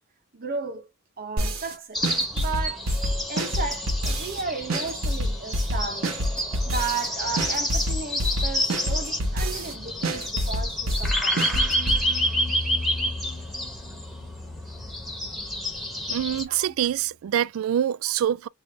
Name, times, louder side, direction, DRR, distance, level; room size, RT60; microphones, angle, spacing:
voice 1, 0.3-0.9 1.2-2.0 2.3-2.9 3.3-6.2 6.6-11.5 16.5-16.7, right 4 dB, 45° right, 0.8 m, -34 dB
sound 1, 1.4-1.7 2.0-4.4 4.7-7.1 7.4-9.7 10.0-12.0, equal, 90° right, 1.2 m, -27 dB
sound 2, 1.9-16.4, equal, ahead, 1.0 m, -29 dB
sound 3, 11.6-16.8, left 2 dB, 35° left, 0.4 m, -37 dB
voice 2, 16.1-18.5, right 10 dB, 70° right, 0.3 m, -25 dB
3.5 x 2.6 x 3.3 m
head